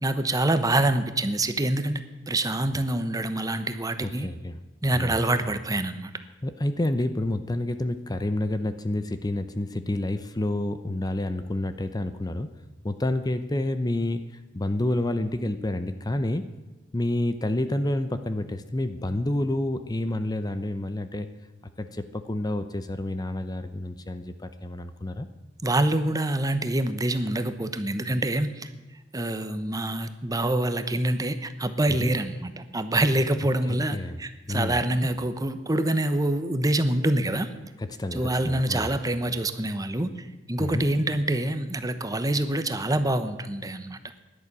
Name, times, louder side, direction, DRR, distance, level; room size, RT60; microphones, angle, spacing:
voice 1, 0.0-4.3 4.8-6.1 25.6-28.7 29.1-37.5 38.1-40.1 40.5-44.0, right 1 dB, 20° right, 10 dB, 1.0 m, -26 dB
voice 2, 4.0-4.6 4.9-5.2 6.4-12.5 12.8-16.5 16.9-21.3 21.8-25.3 31.9-32.1 33.9-34.2 34.5-34.8 37.8-39.0 40.6-40.9, left 1 dB, 20° left, 10 dB, 0.7 m, -29 dB
17.0 x 11.0 x 6.1 m, 1.1 s
head